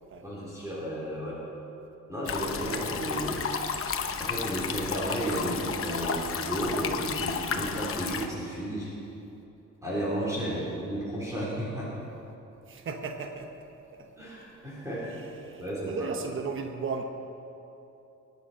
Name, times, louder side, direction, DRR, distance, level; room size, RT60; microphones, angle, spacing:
voice 1, 0.2-1.4 2.1-3.4 4.2-8.9 9.8-11.9 14.2-15.2 15.6-16.1, right 1 dB, 10° right, -8 dB, 3.6 m, -33 dB
sound 1, 2.3-8.3, left 6 dB, 45° left, 0.9 m, -32 dB
voice 2, 10.4-10.9 12.7-13.5 15.1-17.0, right 5 dB, 40° right, 4 dB, 1.0 m, -36 dB
23.5 x 10.5 x 5.7 m, 2.9 s
wide cardioid pair, 180°, 31 cm